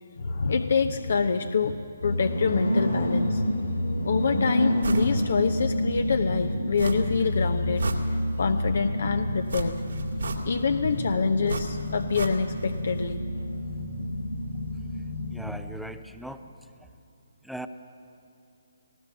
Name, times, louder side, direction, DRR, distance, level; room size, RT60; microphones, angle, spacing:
voice 1, 0.2-1.8 2.0-3.4 4.0-7.9 8.4-9.8 10.4-13.3, left 5 dB, 65° left, 7 dB, 0.9 m, -26 dB
sound 1, 2.0-15.5, left 1 dB, 80° left, 6.6 m, -29 dB
sound 2, 4.8-5.1 5.5-5.6 6.8-7.3 7.6-8.5 9.5-10.8 11.5-12.7 13.0-13.1, right 4 dB, 70° right, 2.4 m, -34 dB
voice 2, 15.3-16.5 17.4-17.7, equal, ahead, 8 dB, 0.6 m, -39 dB
19.0 x 17.5 x 8.1 m, 2.6 s
figure-of-eight pair, 145°, 0 cm